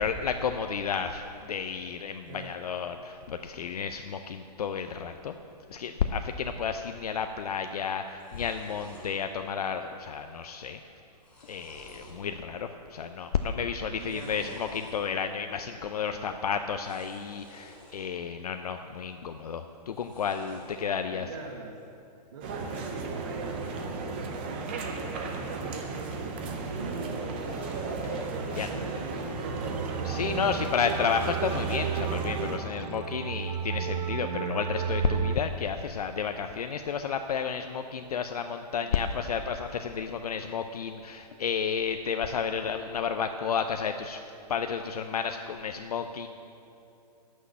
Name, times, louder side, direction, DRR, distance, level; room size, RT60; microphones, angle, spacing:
voice 1, 0.0-5.3 5.7-10.8 11.4-21.3 28.5-28.7 30.0-44.2 44.5-46.3, left 6 dB, 65° left, 7 dB, 0.6 m, -31 dB
voice 2, 2.2-2.6 13.6-14.6 16.1-16.4 20.5-20.6 21.1-21.8 22.3-28.0 28.3-30.8 38.7-39.1, right 3 dB, 50° right, 1 dB, 1.1 m, -42 dB
sound 1, 7.6-7.7 7.9-9.1 9.6-10.0 10.3-10.4 10.9-12.2 12.7-13.1 13.9-14.9 16.7-18.1 18.5-19.1 19.8-20.9, equal, 5° left, 1.6 m, -52 dB
sound 2, 22.4-32.6, right 3 dB, 15° right, 0.5 m, -35 dB
sound 3, 29.7-35.4, right 8 dB, 65° right, 0.5 m, -33 dB
11.0 x 6.5 x 8.4 m, 2.7 s
hypercardioid pair, 175°, 21 cm